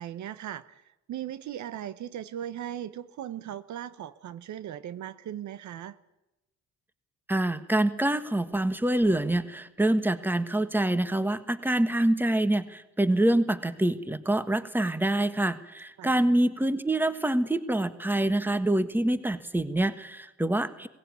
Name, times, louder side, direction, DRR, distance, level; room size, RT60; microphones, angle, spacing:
voice 1, 0.0-6.0 16.0-16.2, right 11 dB, 70° right, 15 dB, 1.0 m, -38 dB
voice 2, 7.3-20.9, right 1 dB, 5° right, 12 dB, 1.4 m, -26 dB
18.0 x 16.5 x 9.5 m, 0.96 s
cardioid pair, 90°, 30 cm